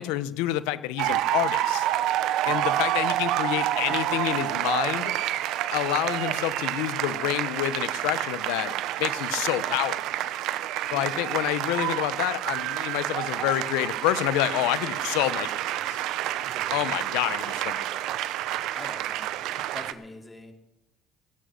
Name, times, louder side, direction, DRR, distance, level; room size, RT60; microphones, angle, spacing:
voice 1, 0.0-1.9 2.4-5.1 5.7-10.0 10.9-16.0 16.7-17.8 18.2-18.3, left 15 dB, 85° left, 16 dB, 0.8 m, -28 dB
sound 1, 1.0-19.9, right 13 dB, 75° right, 0.8 m, -28 dB
voice 2, 16.5-16.9 18.7-19.3 19.7-20.5, left 2 dB, 15° left, 4 dB, 2.9 m, -43 dB
17.5 x 8.7 x 6.4 m, 0.92 s
supercardioid pair, 80°, 0 cm